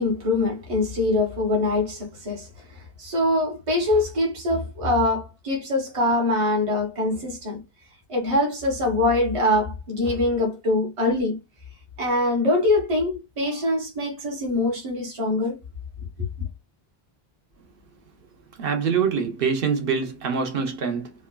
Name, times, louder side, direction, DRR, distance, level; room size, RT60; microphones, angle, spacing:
voice 1, 0.0-7.6 8.1-11.4 12.0-15.6, left 2 dB, 35° right, 1.0 m, -23 dB
voice 2, 18.6-21.1, right 6 dB, 65° right, 0.9 m, -24 dB
2.9 x 2.2 x 2.2 m
omnidirectional pair, 1.0 m